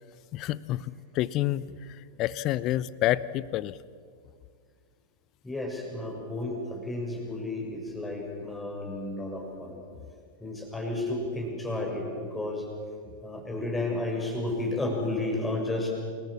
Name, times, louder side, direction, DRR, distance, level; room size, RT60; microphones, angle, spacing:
voice 1, 0.3-1.7 2.2-3.8, left 14 dB, 40° left, 19 dB, 0.8 m, -28 dB
voice 2, 5.4-9.8 10.4-12.7 13.2-15.9, left 2 dB, 10° left, 1 dB, 6.7 m, -32 dB
28.5 x 21.0 x 7.4 m, 2.1 s
figure-of-eight pair, 90°, 0 cm